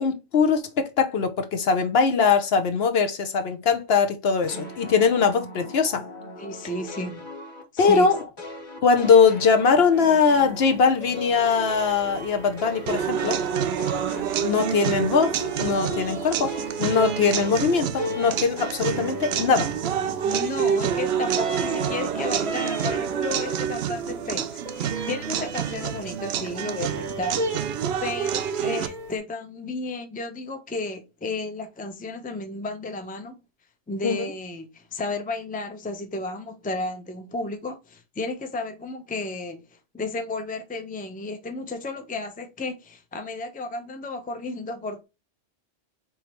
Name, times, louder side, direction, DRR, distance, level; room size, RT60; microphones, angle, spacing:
voice 1, 0.0-6.0 7.8-8.2 8.8-13.4 14.4-16.5 16.8-19.7 34.0-34.3, left 5 dB, 60° left, 0.9 m, -21 dB
sound 1, 4.5-10.8 11.1-20.4 20.7-23.7, left 1 dB, 40° left, 1.2 m, -39 dB
voice 2, 6.4-7.3 7.7-8.1 20.2-33.4 33.9-45.0, left 2 dB, 10° left, 0.5 m, -33 dB
sound 2, 9.9-29.2, right 2 dB, 30° right, 0.8 m, -37 dB
sound 3, 12.9-28.9, right 8 dB, 65° right, 0.8 m, -28 dB
5.0 x 3.1 x 3.0 m
omnidirectional pair, 1.2 m